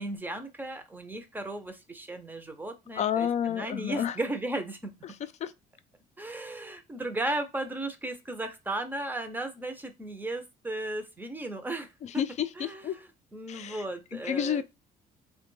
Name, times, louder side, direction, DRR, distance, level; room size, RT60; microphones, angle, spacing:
voice 1, 0.0-4.9 6.2-11.9 12.1-12.2 12.6-13.1 13.3-14.6, right 2 dB, 10° right, 0.6 m, -35 dB
voice 2, 3.0-4.2 5.0-5.1 5.4-5.5 12.0-13.0 13.5-13.8 14.2-14.6, left 9 dB, 45° left, 0.4 m, -30 dB
3.2 x 2.2 x 3.1 m
cardioid pair, 110°, 17 cm